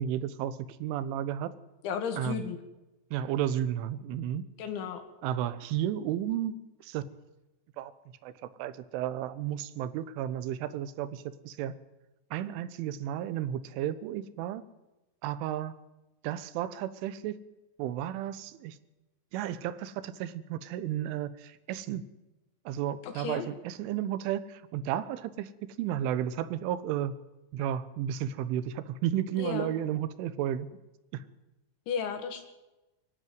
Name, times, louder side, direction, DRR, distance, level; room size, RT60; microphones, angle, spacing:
voice 1, 0.0-1.5 2.2-2.4 3.1-4.4 5.2-6.6 6.8-7.0 7.8-7.9 8.2-8.3 8.6-11.7 12.3-14.6 15.2-15.7 16.2-17.3 17.8-18.8 19.3-22.0 22.7-25.5 25.8-27.1 27.5-30.7 31.1-31.2, right 11 dB, 90° right, 15 dB, 3.5 m, -33 dB
voice 2, 1.8-2.6 4.6-5.0 23.0-23.5 29.4-29.7 31.9-32.4, left 7 dB, 75° left, 7 dB, 4.4 m, -34 dB
24.0 x 11.5 x 9.4 m, 1.0 s
omnidirectional pair, 5.4 m